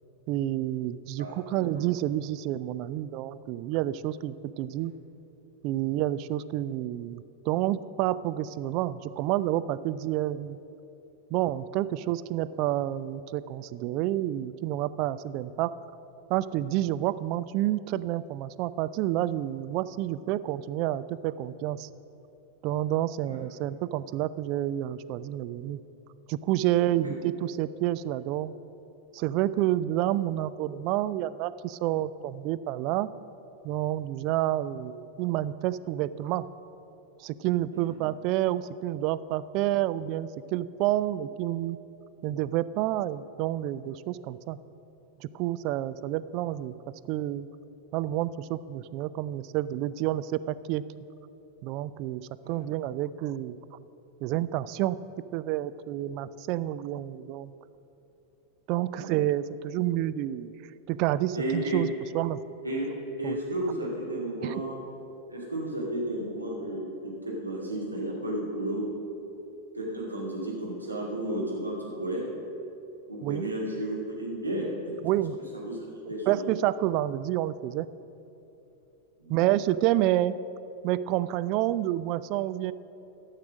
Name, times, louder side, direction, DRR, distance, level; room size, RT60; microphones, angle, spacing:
voice 1, 0.3-4.9 5.6-10.6 11.3-15.7 16.3-21.9 22.6-25.8 26.3-28.5 29.1-33.1 33.6-36.5 37.2-41.8 42.2-44.6 45.2-46.7 47.1-47.5 47.9-50.8 51.6-53.6 54.2-55.0 55.3-57.5 58.7-60.5 60.9-62.4 63.2-63.4 64.4-64.5 73.2-73.4 75.0-75.4 76.3-77.9 79.3-80.3 80.8-82.7, right 14 dB, 40° right, 15 dB, 0.3 m, -29 dB
voice 2, 1.2-1.9 23.2-23.4 27.0-27.1 37.7-38.0 52.4-52.6 58.9-59.1 61.3-61.8 62.6-64.8 65.3-68.9 69.7-72.3 73.1-74.7 75.5-76.5 79.2-79.4, right 1 dB, 85° right, -4 dB, 2.3 m, -33 dB
12.5 x 6.6 x 6.2 m, 2.9 s
figure-of-eight pair, 90°, 0 cm